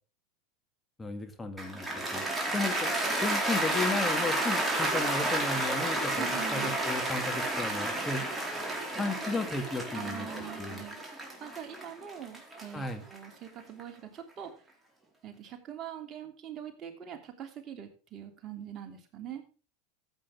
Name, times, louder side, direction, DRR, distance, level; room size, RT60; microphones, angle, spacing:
voice 1, 1.0-2.2 2.5-2.9 3.2-8.3 9.0-10.8 12.7-13.0, left 3 dB, 15° left, 6 dB, 2.1 m, -34 dB
Cheering / Applause, 1.6-13.8, right 1 dB, 10° right, 4.4 m, -31 dB
voice 2, 6.2-6.8 9.9-11.0 11.4-14.6 15.2-19.4, right 9 dB, 40° right, 5 dB, 3.0 m, -43 dB
14.5 x 8.5 x 3.6 m, 0.35 s
hypercardioid pair, 90°, 0 cm